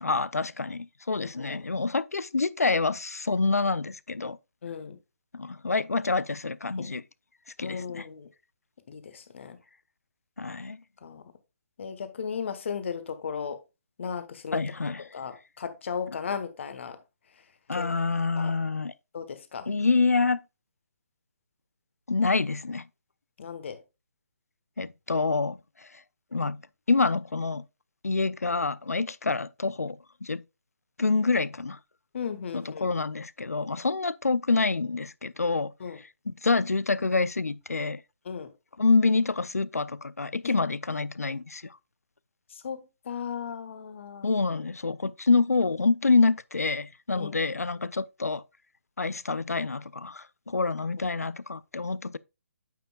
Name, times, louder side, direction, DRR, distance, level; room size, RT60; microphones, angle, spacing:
voice 1, 0.0-4.4 5.3-7.0 7.6-8.1 10.4-10.8 14.5-15.0 17.7-18.9 19.7-20.4 22.1-22.9 24.8-25.9 26.3-26.6 26.9-27.6 28.0-30.4 31.0-31.8 32.5-35.7 36.3-38.0 38.8-41.8 44.2-48.4 49.0-52.2, left 3 dB, 90° left, 0.4 m, -27 dB
voice 2, 1.2-1.6 4.6-5.0 6.8-6.9 7.6-8.3 8.9-9.6 11.0-11.2 11.8-13.6 14.0-14.6 15.1-17.0 17.7-17.9 18.4-18.5 19.1-19.7 23.4-23.8 32.1-32.9 35.8-36.0 38.2-38.5 40.4-40.5 42.5-44.3 47.1-47.3, left 6 dB, 55° left, 1.2 m, -36 dB
9.2 x 7.1 x 2.3 m
figure-of-eight pair, 140°, 8 cm